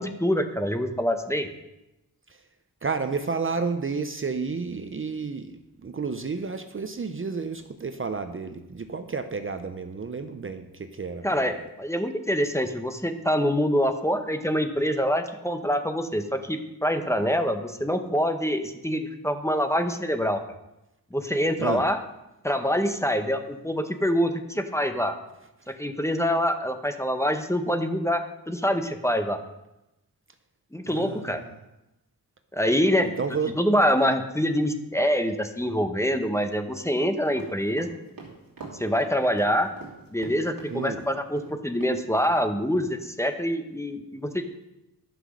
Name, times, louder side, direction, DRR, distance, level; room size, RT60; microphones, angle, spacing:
voice 1, 0.0-1.5 11.2-20.4 21.1-22.0 22.4-25.2 25.8-29.4 30.7-31.4 32.5-33.1 33.6-37.9 38.8-39.7 40.1-44.4, equal, 10° left, 7 dB, 0.8 m, -25 dB
voice 2, 2.8-11.5 21.6-21.8 30.9-31.6 33.0-33.6 40.7-41.0, right 5 dB, 35° right, 8 dB, 0.6 m, -31 dB
sound 1, 37.3-41.5 41.8-41.9 42.2-42.4, right 4 dB, 65° right, 2.8 m, -43 dB
11.5 x 5.9 x 6.4 m, 0.94 s
wide cardioid pair, 105°, 37 cm